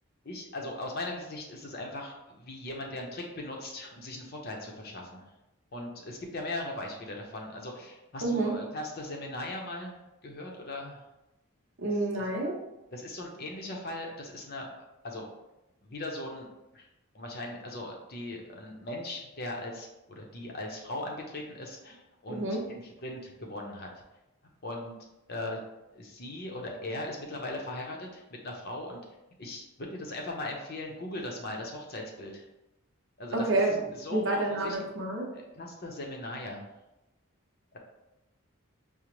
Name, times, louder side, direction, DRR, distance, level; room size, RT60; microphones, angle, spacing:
voice 1, 0.2-5.3 5.7-11.0 12.1-12.3 12.9-14.7 15.0-15.3 15.8-16.5 16.7-16.9 17.1-23.9 24.6-24.9 25.3-25.6 25.9-29.0 29.4-32.5 33.2-34.8 35.3-36.7, left 1 dB, 45° left, 0 dB, 0.6 m, -39 dB
voice 2, 8.2-8.5 11.8-12.5 22.3-22.6 33.3-33.8 34.1-35.3, right 2 dB, 60° right, -1 dB, 0.7 m, -28 dB
5.0 x 2.0 x 3.0 m, 0.94 s
head